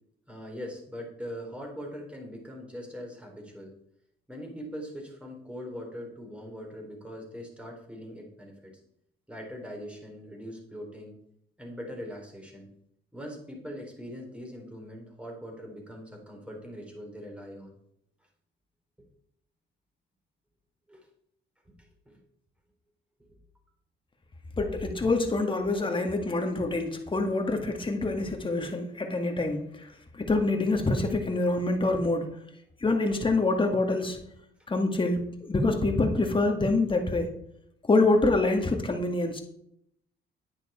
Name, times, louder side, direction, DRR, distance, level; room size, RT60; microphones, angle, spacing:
voice 1, 0.3-3.7 4.3-8.7 9.3-11.2 11.6-12.7 13.1-17.7 20.9-21.0 21.8-22.2 23.2-23.4, equal, 5° right, 0 dB, 4.0 m, -41 dB
voice 2, 24.6-29.6 30.1-32.3 32.8-34.2 34.7-37.3 37.9-39.4, left 2 dB, 25° left, 4 dB, 2.0 m, -26 dB
9.9 x 9.8 x 4.4 m, 0.72 s
cardioid pair, 90°, 20 cm